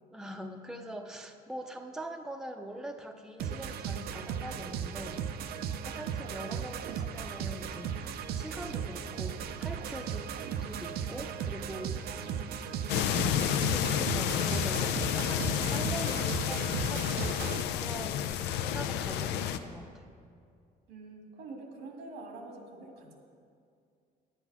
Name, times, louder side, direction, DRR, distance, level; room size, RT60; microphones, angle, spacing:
voice 1, 0.1-11.9 13.7-20.0, right 1 dB, 5° right, 4 dB, 0.6 m, -43 dB
sound 1, 3.4-17.6, right 8 dB, 65° right, 0.6 m, -36 dB
voice 2, 12.0-12.6 20.9-23.1, right 3 dB, 85° right, 2 dB, 1.9 m, -47 dB
sound 2, 12.9-19.6, left 10 dB, 90° left, 0.5 m, -30 dB
9.8 x 8.1 x 5.9 m, 2.3 s
cardioid pair, 110°, 17 cm